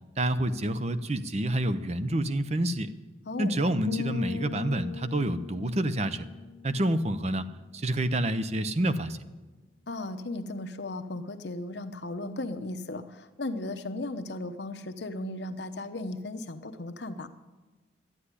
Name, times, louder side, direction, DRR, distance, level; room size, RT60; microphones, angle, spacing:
voice 1, 0.2-2.9 3.4-6.3 6.6-7.4 7.7-9.2, right 1 dB, 35° right, 12 dB, 0.7 m, -28 dB
sound 1, 3.9-7.6, left 7 dB, 85° left, 0.4 m, -39 dB
voice 2, 9.9-17.3, left 2 dB, 65° left, 9 dB, 1.0 m, -36 dB
12.0 x 10.0 x 9.8 m, 1.2 s
head